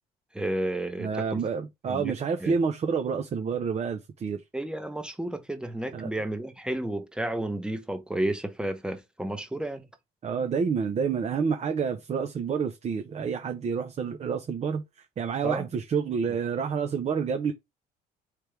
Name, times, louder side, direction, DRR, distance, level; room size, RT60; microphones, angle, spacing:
voice 1, 0.3-1.4 1.9-2.1 2.4-2.6 4.5-9.9 15.4-15.7, right 1 dB, 5° right, 0.8 m, -32 dB
voice 2, 1.0-4.4 5.9-6.1 10.2-14.8 15.2-17.5, right 6 dB, 40° right, 0.7 m, -28 dB
4.4 x 3.4 x 3.3 m
cardioid pair, 110°, 17 cm